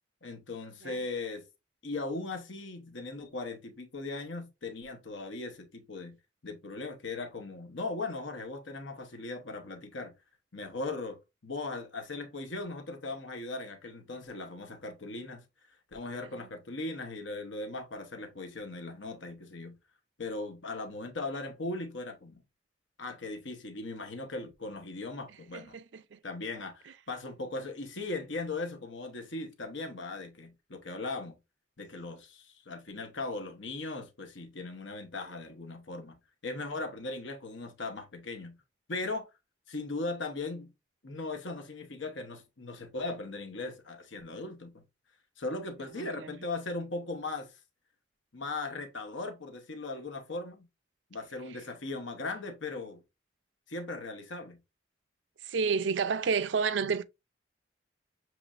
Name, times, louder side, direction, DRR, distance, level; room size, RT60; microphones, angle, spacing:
voice 1, 0.2-1.4 1.8-6.2 6.4-10.1 10.5-11.2 11.4-15.4 15.9-19.8 20.2-22.4 23.0-25.8 26.2-31.4 31.8-36.2 36.4-38.6 38.9-39.3 39.7-40.7 41.0-44.8 45.4-47.5 48.3-50.7 51.1-53.0 53.7-54.6, left 3 dB, 80° left, 1.0 m, -38 dB
voice 2, 25.5-26.2 46.0-46.3 55.4-57.0, right 5 dB, 75° right, 0.4 m, -30 dB
6.8 x 3.1 x 2.5 m
head